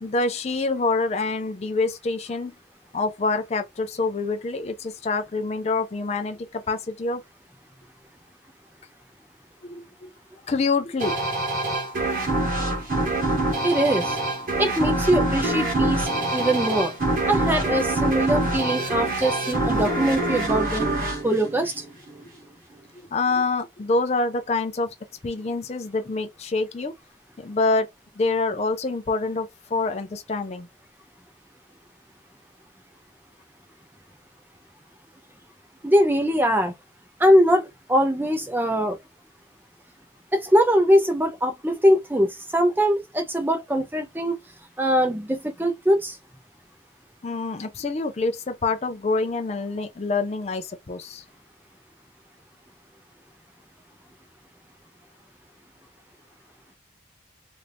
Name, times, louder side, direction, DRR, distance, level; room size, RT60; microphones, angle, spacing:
voice 1, 0.0-2.5 2.9-7.2 9.6-10.1 10.5-11.2 23.0-24.9 25.2-26.9 27.4-27.9 28.2-30.7 47.2-51.2, left 3 dB, 35° left, 0.4 m, -26 dB
sound 1, 11.0-22.2, right 2 dB, 45° right, 1.0 m, -25 dB
voice 2, 13.6-14.2 14.6-16.9 17.3-20.9 21.2-21.8 35.8-36.8 37.2-39.0 40.3-44.4 44.8-46.2, equal, 10° right, 0.6 m, -22 dB
2.7 x 2.5 x 3.4 m
head